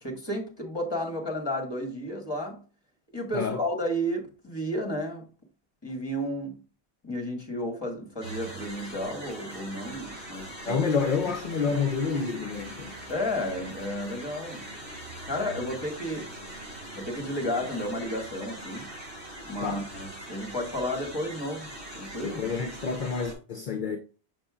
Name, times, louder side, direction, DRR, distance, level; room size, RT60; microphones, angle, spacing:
voice 1, 0.0-2.6 3.1-5.3 5.8-6.6 7.0-10.8 13.1-14.7 15.2-16.3 16.9-18.9 19.5-22.4, equal, 25° left, 1.6 m, -32 dB
sound 1, 8.2-23.3, right 1 dB, 80° right, 3.5 m, -42 dB
voice 2, 10.6-12.9 19.6-19.8 22.2-24.0, left 5 dB, 50° left, 0.8 m, -28 dB
6.7 x 6.2 x 2.4 m
omnidirectional pair, 1.1 m